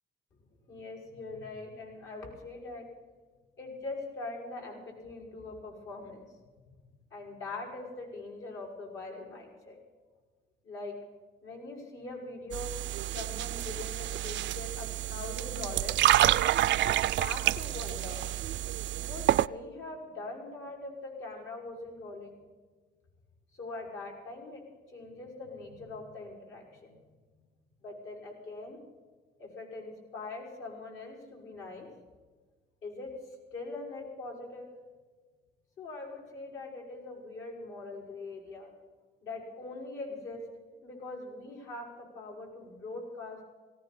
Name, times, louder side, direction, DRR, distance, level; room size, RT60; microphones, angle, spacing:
voice 1, 0.7-2.9 3.6-6.3 7.1-9.8 10.6-11.0 11.4-12.7 13.1-16.0 16.8-18.3 19.0-22.4 23.5-24.6 24.9-27.0 27.8-28.8 29.4-31.9 32.8-33.1 33.5-34.7 35.8-38.7 39.2-40.4 40.8-43.4, left 3 dB, 75° left, -1 dB, 6.1 m, -42 dB
sound 1, 12.5-19.5, right 13 dB, 65° right, 0.4 m, -28 dB
18.5 x 17.5 x 4.3 m, 1.4 s
cardioid pair, 90°, 20 cm